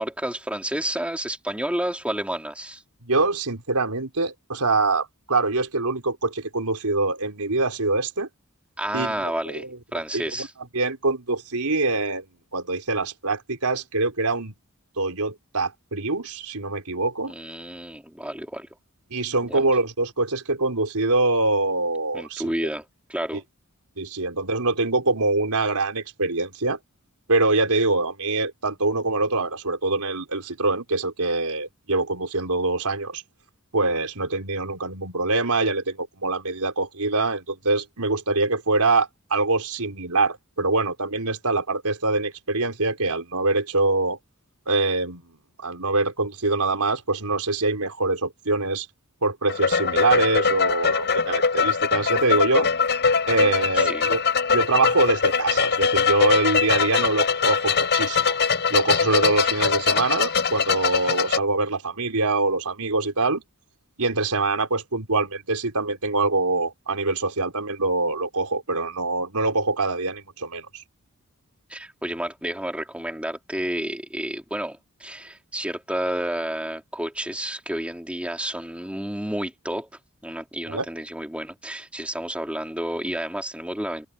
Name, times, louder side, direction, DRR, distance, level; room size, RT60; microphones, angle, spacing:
voice 1, 0.0-2.8 8.8-9.7 9.9-10.5 17.3-18.7 19.5-19.7 22.1-22.8 23.1-23.4 53.7-54.1 71.7-79.9 80.2-84.1, right 1 dB, 5° right, 3.3 m, -30 dB
voice 2, 3.0-8.3 8.9-9.7 10.1-10.2 10.7-12.2 12.5-14.5 15.0-17.3 19.1-22.5 24.0-26.8 27.3-33.2 33.7-44.2 44.7-45.2 45.6-48.9 49.2-52.7 53.3-54.2 54.5-58.4 58.7-63.4 64.0-70.8 80.7-80.9, right 3 dB, 85° right, 4.2 m, -24 dB
sound 1, 49.5-61.4, left 5 dB, 50° left, 5.2 m, -22 dB
head